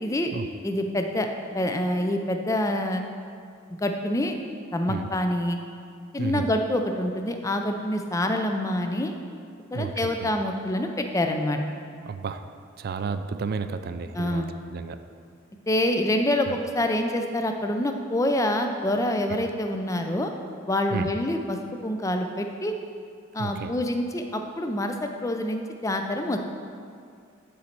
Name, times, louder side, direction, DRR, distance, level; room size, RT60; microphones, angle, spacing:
voice 1, 0.0-0.3 0.6-1.3 1.5-3.0 3.7-4.4 4.7-5.6 6.1-9.1 9.7-11.6 14.1-14.5 15.7-20.3 20.7-22.7 23.3-26.4, left 1 dB, 15° left, 5 dB, 0.4 m, -26 dB
voice 2, 6.2-6.5 9.7-10.3 11.9-12.5 12.8-15.0 20.9-21.1 23.4-23.7, right 5 dB, 50° right, 10 dB, 0.3 m, -32 dB
10.0 x 4.2 x 4.4 m, 2.3 s
head